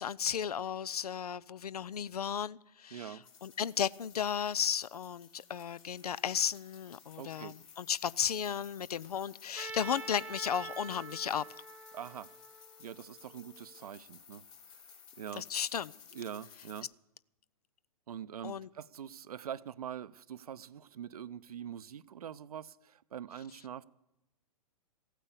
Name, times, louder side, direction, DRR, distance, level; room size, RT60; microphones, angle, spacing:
voice 1, 0.0-11.4 15.4-15.9 18.4-18.7, left 8 dB, 85° left, 0.5 m, -34 dB
voice 2, 2.9-3.3 7.2-7.5 11.9-12.3 12.8-15.4 16.1-16.9 18.1-23.8, right 9 dB, 80° right, 0.6 m, -44 dB
sound 1, 3.2-16.8, left 7 dB, 65° left, 3.6 m, -56 dB
Trumpet, 9.6-13.6, right 4 dB, 10° right, 1.1 m, -46 dB
15.0 x 9.1 x 8.2 m
hypercardioid pair, 120°, 19 cm